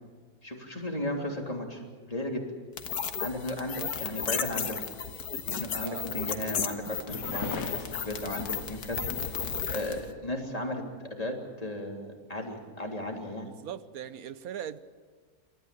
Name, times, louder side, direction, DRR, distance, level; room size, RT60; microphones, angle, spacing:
voice 1, 0.4-2.4 3.2-4.9 5.5-10.8 11.1-13.5, left 1 dB, 25° left, 3.5 m, -35 dB
sound 1, 2.8-10.0, left 7 dB, 90° left, 1.8 m, -34 dB
voice 2, 3.4-3.9 5.8-6.1 13.4-14.8, right 9 dB, 75° right, 1.4 m, -40 dB
sound 2, 7.1-10.1, left 4 dB, 65° left, 1.7 m, -39 dB
27.5 x 14.0 x 9.9 m
omnidirectional pair, 1.6 m